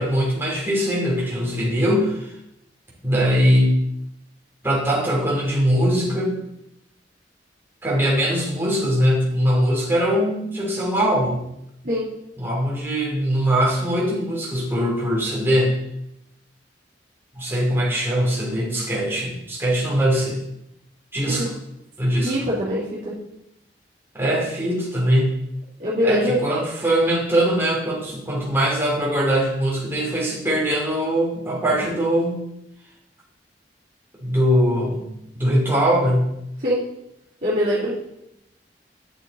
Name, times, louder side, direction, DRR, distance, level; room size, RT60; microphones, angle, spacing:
voice 1, 0.0-2.3 3.0-3.8 4.6-6.4 7.8-11.5 12.4-15.8 17.4-20.4 21.1-21.5 22.0-22.3 24.1-25.4 26.0-32.5 34.2-36.3, equal, 15° right, -4 dB, 2.6 m, -21 dB
voice 2, 22.2-23.1 25.8-26.4 31.7-31.8 36.6-36.8 37.4-37.9, equal, 45° right, -11 dB, 2.8 m, -23 dB
9.2 x 6.6 x 4.2 m, 0.81 s
head